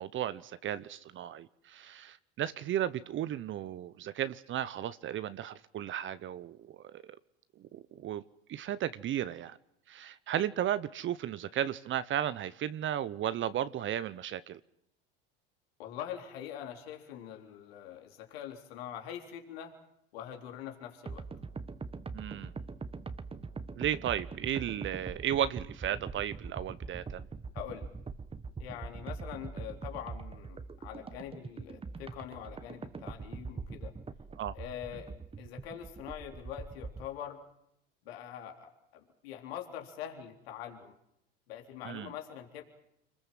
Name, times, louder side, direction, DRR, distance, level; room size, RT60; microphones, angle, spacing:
voice 1, 0.0-7.2 7.7-8.2 8.5-9.6 9.9-14.6 22.1-22.5 23.8-27.2 34.4-34.5 41.8-42.1, right 11 dB, 40° right, 15 dB, 0.9 m, -34 dB
voice 2, 15.8-19.8 20.1-21.3 27.5-27.9 28.6-33.9 34.6-37.4 38.1-40.9 41.5-42.6, left 10 dB, 80° left, 3 dB, 3.8 m, -44 dB
sound 1, 21.1-37.1, right 4 dB, 20° right, 1.4 m, -43 dB
27.0 x 20.5 x 7.6 m, 0.78 s
hypercardioid pair, 95°, 30 cm